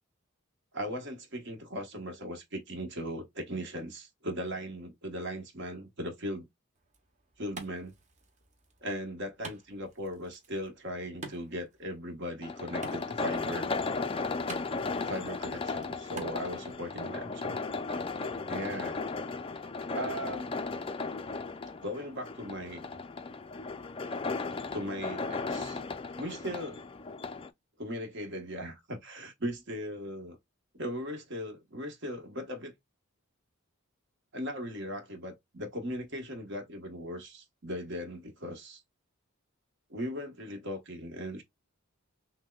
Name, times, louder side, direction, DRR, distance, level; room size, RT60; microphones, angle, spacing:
voice 1, 0.7-6.5 7.4-7.9 8.8-13.7 15.0-17.6 18.5-19.0 19.9-20.6 21.8-22.9 24.7-25.8 26.2-26.8 27.8-30.4 30.8-32.7 34.3-38.8 39.9-41.4, equal, 55° right, 1.2 m, -38 dB
Wood, 6.7-16.7, right 3 dB, 35° right, 0.9 m, -50 dB
sound 1, 12.4-27.5, left 4 dB, 25° left, 0.3 m, -36 dB
6.2 x 2.1 x 2.3 m
head